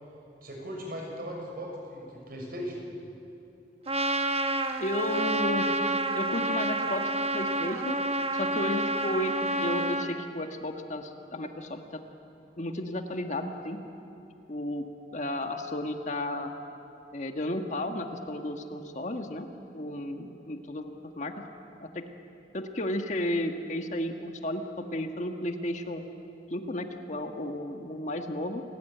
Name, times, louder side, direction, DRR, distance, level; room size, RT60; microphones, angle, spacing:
voice 1, 0.4-2.8, equal, 55° right, 1 dB, 6.2 m, -38 dB
Trumpet, 3.9-10.1, right 2 dB, 35° right, 1.2 m, -29 dB
voice 2, 4.8-5.7 6.1-8.0 8.3-12.0 12.6-13.8 14.5-14.9 15.1-16.5 17.1-19.5 19.7-21.3 21.8-22.0 22.5-26.0 26.5-28.6, left 1 dB, 45° left, 5 dB, 1.5 m, -33 dB
28.5 x 18.0 x 9.2 m, 2.8 s
head